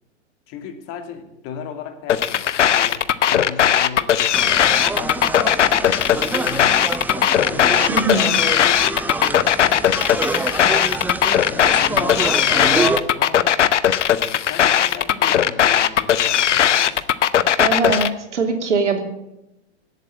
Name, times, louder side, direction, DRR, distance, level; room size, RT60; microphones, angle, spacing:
voice 1, 0.5-7.9 8.2-10.8 11.4-13.6 14.0-17.0, left 6 dB, 40° left, 7 dB, 2.4 m, -35 dB
sound 1, 2.1-18.1, left 10 dB, 85° left, 0.9 m, -17 dB
sound 2, 4.3-13.0, right 2 dB, 5° right, 0.7 m, -26 dB
voice 2, 7.9-8.3 17.6-19.0, right 4 dB, 85° right, 4 dB, 3.0 m, -21 dB
18.5 x 8.2 x 8.7 m, 0.93 s
hypercardioid pair, 115°, 35 cm